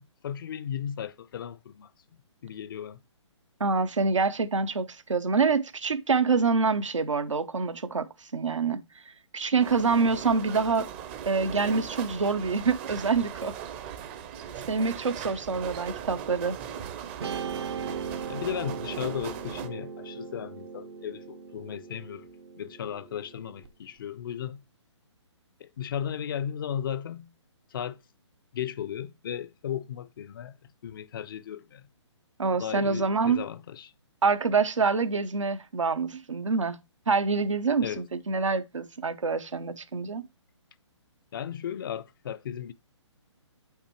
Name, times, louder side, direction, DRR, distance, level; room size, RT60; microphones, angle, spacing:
voice 1, 0.0-1.9 2.4-3.0 18.3-22.3 22.6-24.6 25.6-27.3 27.7-28.0 28.5-30.6 30.8-31.9 32.5-33.9 37.8-38.1 41.3-42.7, left 9 dB, 45° left, 0.5 m, -35 dB
voice 2, 3.6-8.1 8.3-8.8 9.3-10.9 11.3-13.5 14.7-16.6 32.4-33.4 34.2-36.8 37.1-40.2, right 4 dB, 85° right, 0.9 m, -26 dB
sound 1, 9.6-19.7, right 8 dB, 25° right, 0.6 m, -39 dB
Guitar, 17.2-23.7, right 6 dB, 60° right, 0.8 m, -38 dB
8.0 x 5.8 x 3.0 m
hypercardioid pair, 145°, 16 cm